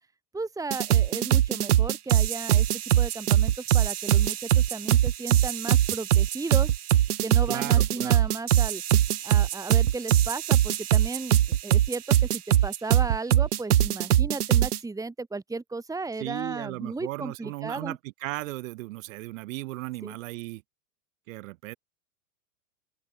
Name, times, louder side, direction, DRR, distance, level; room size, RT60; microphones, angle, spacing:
voice 1, 0.3-2.7 3.0-6.8 7.2-8.8 9.2-11.4 11.6-18.0 20.0-20.2, right 3 dB, 5° right, 2.3 m, -35 dB
sound 1, 0.7-14.8, right 11 dB, 75° right, 0.9 m, -22 dB
voice 2, 7.5-8.2 16.2-20.6 21.3-21.8, right 20 dB, 55° right, 3.8 m, -36 dB
open air
figure-of-eight pair, 95°, 46 cm